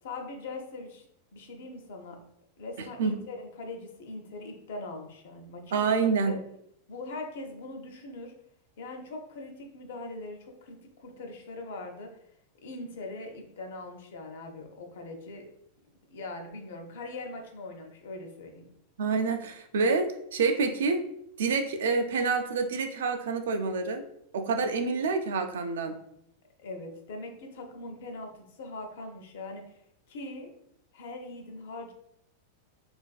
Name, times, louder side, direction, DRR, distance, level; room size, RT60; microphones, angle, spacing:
voice 1, 0.0-1.1 1.3-2.2 2.6-5.9 6.3-6.4 6.9-8.3 8.8-12.1 12.6-15.5 16.1-18.7 26.6-29.8 30.1-30.5 30.9-31.9, left 2 dB, 75° left, 3 dB, 0.5 m, -41 dB
voice 2, 5.7-6.4 19.0-21.0 21.4-24.0 24.3-26.0, right 4 dB, 85° right, 6 dB, 0.3 m, -27 dB
2.4 x 2.3 x 2.2 m, 0.74 s
supercardioid pair, 140°, 0 cm